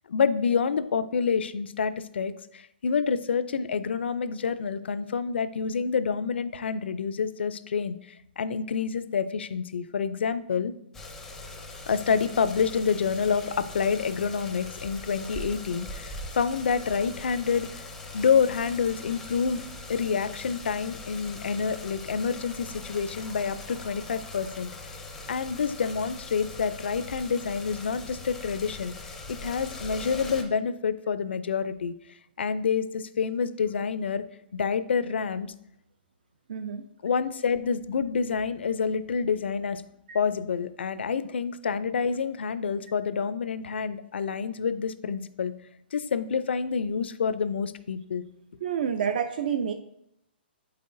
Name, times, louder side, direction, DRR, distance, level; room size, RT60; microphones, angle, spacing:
voice 1, 0.1-8.0 8.4-10.7 11.9-17.8 18.1-19.6 19.9-24.9 25.3-28.9 29.3-31.9 32.4-34.2 34.5-35.5 37.0-39.8 40.1-45.5 45.9-48.2, left 6 dB, 80° left, 14 dB, 0.5 m, -28 dB
sound 1, 10.9-30.4, left 2 dB, 5° left, 0.5 m, -41 dB
voice 2, 36.5-36.8 40.1-40.2 48.6-49.7, right 7 dB, 55° right, 9 dB, 0.4 m, -28 dB
8.3 x 5.6 x 2.6 m, 0.80 s
hypercardioid pair, 170°, 6 cm